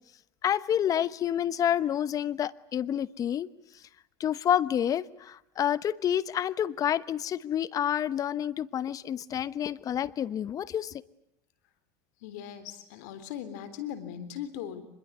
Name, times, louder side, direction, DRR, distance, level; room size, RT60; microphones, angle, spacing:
voice 1, 0.4-3.5 4.2-11.0, left 10 dB, 40° left, 18 dB, 1.0 m, -28 dB
voice 2, 12.2-14.8, left 10 dB, 80° left, 12 dB, 3.6 m, -39 dB
25.5 x 21.5 x 9.4 m, 0.77 s
supercardioid pair, 105°, 9 cm